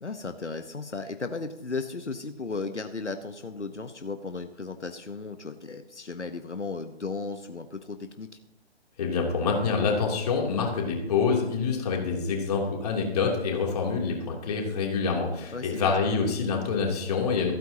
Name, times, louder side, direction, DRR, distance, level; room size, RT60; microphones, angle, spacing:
voice 1, 0.0-8.3 15.5-15.9, left 4 dB, 85° left, 8 dB, 1.1 m, -35 dB
voice 2, 9.0-17.5, left 5 dB, 35° left, -1 dB, 3.1 m, -26 dB
27.5 x 9.2 x 2.9 m, 0.85 s
figure-of-eight pair, 145°, 34 cm